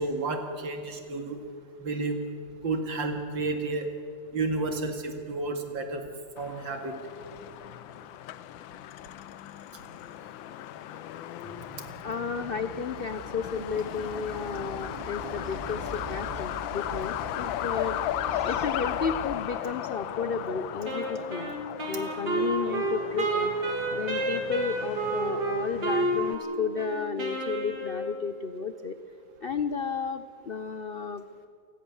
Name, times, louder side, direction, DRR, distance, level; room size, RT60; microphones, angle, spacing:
voice 1, 0.0-1.4 1.8-2.2 2.6-3.9 4.3-6.0 6.4-6.9 18.3-18.5, right 3 dB, 75° right, 5 dB, 2.9 m, -31 dB
Truck, 6.4-26.4, left 12 dB, 85° left, 1.5 m, -36 dB
sound 1, 11.4-19.3, right 4 dB, 45° right, 0.4 m, -43 dB
voice 2, 12.0-18.0 18.4-21.6 21.9-23.5 23.9-29.0 29.4-31.2, left 5 dB, 65° left, 10 dB, 0.5 m, -33 dB
Wind instrument woodwind instrument, 20.8-28.3, right 2 dB, 60° right, 3.5 m, -30 dB
28.5 x 16.5 x 7.2 m, 2.4 s
omnidirectional pair, 2.1 m